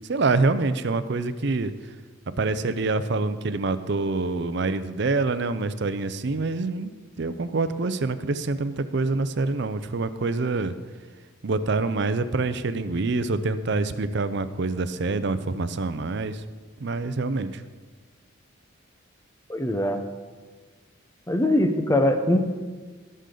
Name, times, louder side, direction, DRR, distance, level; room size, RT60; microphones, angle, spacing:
voice 1, 0.1-1.7 2.4-10.7 11.4-16.4 16.8-17.6, right 3 dB, 60° right, 12 dB, 0.6 m, -26 dB
voice 2, 19.5-20.0 21.3-22.4, left 1 dB, 15° left, 7 dB, 0.7 m, -22 dB
18.5 x 6.6 x 3.9 m, 1.4 s
head